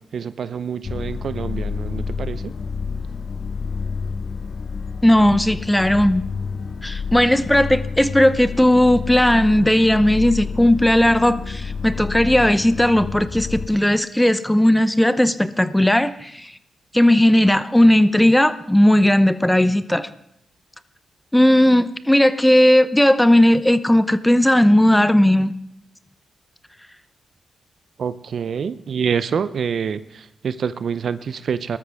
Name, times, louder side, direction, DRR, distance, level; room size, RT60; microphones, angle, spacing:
voice 1, 0.0-2.6 28.0-31.8, right 7 dB, 70° right, 0.6 m, -26 dB
sound 1, 0.8-13.7, left 5 dB, 60° left, 0.8 m, -29 dB
voice 2, 5.0-6.2 6.8-16.5 16.9-20.1 21.3-25.5, left 1 dB, 5° left, 0.7 m, -16 dB
19.5 x 13.0 x 3.5 m
cardioid pair, 60°, 0 cm